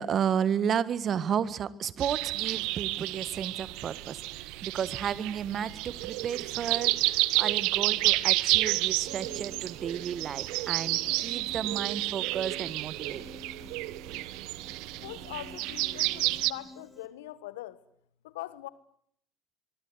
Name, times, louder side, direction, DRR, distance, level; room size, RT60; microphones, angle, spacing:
voice 1, 0.0-13.2, right 8 dB, 45° right, 1.7 m, -32 dB
sound 1, 2.0-16.5, right 20 dB, 65° right, 1.0 m, -30 dB
Piano, 9.1-17.1, left 2 dB, 5° left, 4.9 m, -51 dB
voice 2, 15.0-17.8 18.2-18.7, left 15 dB, 75° left, 1.4 m, -42 dB
24.0 x 22.5 x 9.6 m
hypercardioid pair, 65°, 0 cm